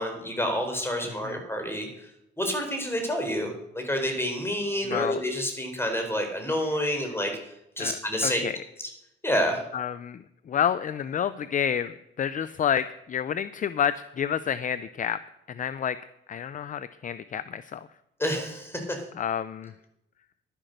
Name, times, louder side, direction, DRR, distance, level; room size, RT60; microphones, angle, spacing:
voice 1, 0.0-2.1 2.4-8.4 9.2-9.6 18.2-19.0, equal, 10° left, 4 dB, 4.0 m, -29 dB
voice 2, 4.9-5.2 7.8-8.6 9.7-15.2 15.5-16.0 16.3-17.9 19.2-19.7, left 8 dB, 40° left, 15 dB, 0.5 m, -29 dB
11.5 x 10.5 x 6.6 m, 0.84 s
cardioid pair, 90°, 20 cm